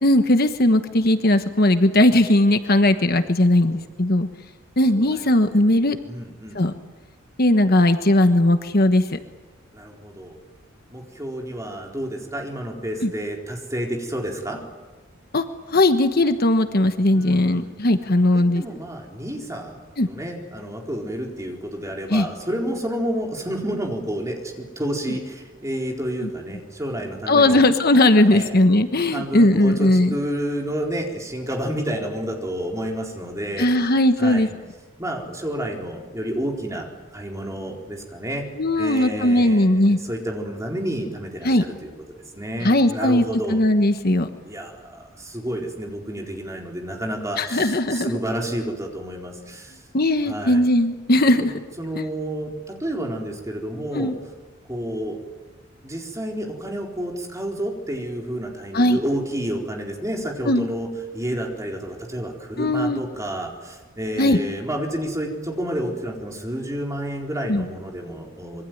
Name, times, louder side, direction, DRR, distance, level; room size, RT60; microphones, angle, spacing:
voice 1, 0.0-4.3 4.8-6.0 6.5-6.7 7.4-9.2 13.0-13.1 15.3-18.6 20.0-20.1 22.1-22.3 26.2-26.3 27.3-30.2 33.6-34.5 38.6-40.0 41.4-41.6 42.6-43.2 43.5-44.3 47.4-48.2 49.9-51.5 51.9-52.0 53.9-54.2 58.7-59.0 60.5-60.7 62.6-63.0 64.2-64.4 67.5-67.6, left 1 dB, 45° left, 8 dB, 1.2 m, -18 dB
voice 2, 3.4-3.8 5.0-5.7 6.1-6.6 9.7-10.4 10.9-14.6 17.1-17.7 18.3-27.7 28.3-28.6 29.1-33.9 34.2-34.5 35.0-38.5 38.8-41.9 42.4-43.6 44.4-49.8 50.3-50.6 51.4-51.5 51.8-54.1 54.7-55.2 55.8-68.7, right 1 dB, 15° right, 1 dB, 4.2 m, -30 dB
26.0 x 23.5 x 9.4 m, 1.3 s
head